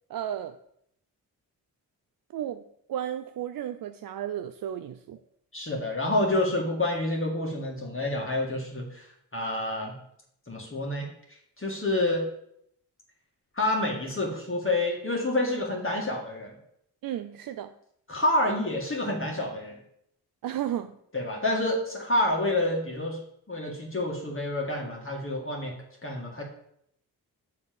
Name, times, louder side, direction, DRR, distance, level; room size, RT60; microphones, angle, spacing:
voice 1, 0.1-0.6 2.3-2.6 2.9-5.2 17.0-17.7 20.4-21.0, right 11 dB, 50° right, 9 dB, 0.5 m, -33 dB
voice 2, 5.5-10.0 10.5-11.1 11.6-12.2 13.6-16.5 18.1-19.8 21.1-23.2 23.5-25.7 26.0-26.4, left 1 dB, 30° left, -1 dB, 2.1 m, -28 dB
5.8 x 4.0 x 5.2 m, 0.73 s
supercardioid pair, 40°, 44 cm